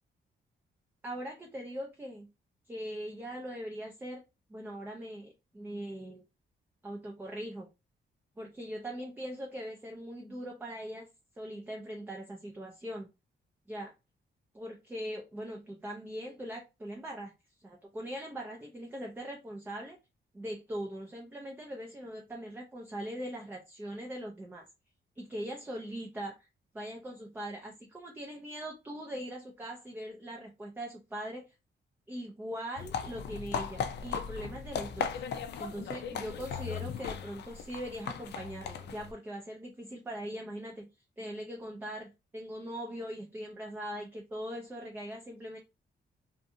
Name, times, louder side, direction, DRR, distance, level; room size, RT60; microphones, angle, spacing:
voice 1, 1.0-2.3 2.7-4.2 4.5-6.2 6.8-7.7 8.4-11.1 11.4-13.1 13.7-13.9 14.5-17.3 17.6-20.0 20.3-24.7 25.2-26.4 26.7-31.4 32.1-35.2 35.6-40.9 41.2-45.6, equal, 10° right, 0.4 m, -41 dB
sound 1, 32.8-39.1, left 7 dB, 60° left, 0.4 m, -37 dB
2.5 x 2.4 x 2.6 m
wide cardioid pair, 175°, 19 cm